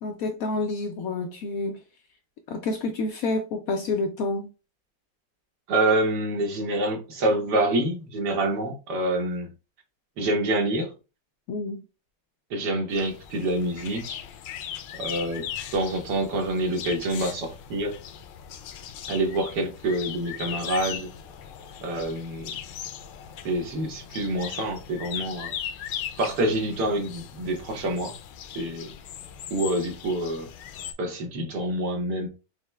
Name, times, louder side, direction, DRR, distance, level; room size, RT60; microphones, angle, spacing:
voice 1, 0.0-1.8 2.5-4.5 11.5-11.8, left 3 dB, 70° left, 0.8 m, -28 dB
voice 2, 5.7-9.5 10.2-10.9 12.5-14.2 15.0-15.5 15.7-17.9 19.1-21.1 21.8-22.6 23.4-25.5 26.2-28.1 28.5-28.9 29.5-30.5 31.0-32.3, right 1 dB, 70° right, 1.6 m, -27 dB
sound 1, 12.9-30.9, left 9 dB, 85° left, 1.3 m, -39 dB
5.6 x 2.1 x 3.1 m
omnidirectional pair, 1.9 m